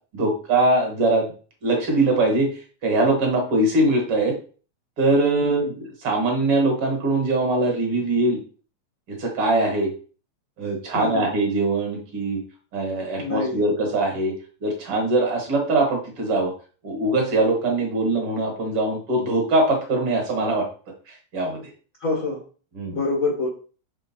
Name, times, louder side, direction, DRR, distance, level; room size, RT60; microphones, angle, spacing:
voice 1, 0.1-1.3 1.6-4.4 5.0-8.4 9.1-9.9 10.6-12.4 12.7-14.3 14.6-16.5 16.8-20.7 21.1-21.7 22.8-23.0, right 2 dB, 55° right, 1 dB, 2.0 m, -22 dB
voice 2, 10.9-11.3 13.2-13.6 22.0-22.4 22.9-23.5, left 3 dB, 60° left, -2 dB, 0.8 m, -26 dB
5.9 x 3.7 x 4.2 m, 0.39 s
omnidirectional pair, 3.5 m